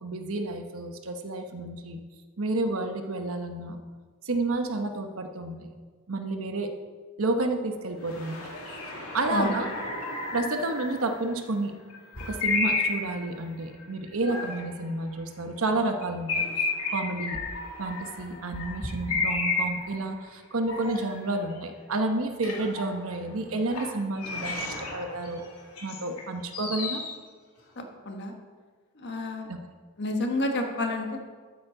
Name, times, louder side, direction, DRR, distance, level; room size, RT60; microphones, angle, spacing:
voice 1, 0.0-2.0 2.4-3.8 4.2-5.7 6.1-6.7 7.2-8.4 9.1-9.7 10.3-11.7 12.2-16.5 16.9-17.4 17.8-25.5 25.8-27.0 29.5-29.6, right 2 dB, 65° right, 5 dB, 1.0 m, -30 dB
sound 1, 8.0-11.4 11.9-13.3 13.8-14.7 15.0-15.1 15.6-15.7 16.0-20.1 20.7-21.6 21.9-22.1 22.4-23.3 23.7-23.9 24.2-26.2 26.5-27.1, left 3 dB, 80° left, 2.4 m, -32 dB
voice 2, 27.8-28.3 29.0-29.5 30.0-31.2, left 2 dB, 50° left, 3 dB, 1.3 m, -29 dB
12.5 x 9.2 x 3.9 m, 1.5 s
head